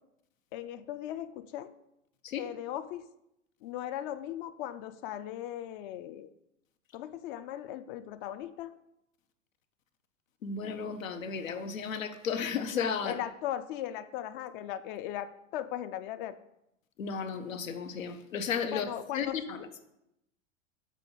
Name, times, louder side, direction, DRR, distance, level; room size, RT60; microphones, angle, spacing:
voice 1, 0.5-1.7 2.4-3.1 3.6-6.3 6.9-8.7 13.0-16.4 18.7-19.4, left 12 dB, 45° left, 12 dB, 0.4 m, -38 dB
voice 2, 10.4-13.2 17.0-19.8, left 6 dB, 90° left, 8 dB, 0.8 m, -34 dB
7.4 x 4.1 x 3.8 m, 0.83 s
hypercardioid pair, 110°, 39 cm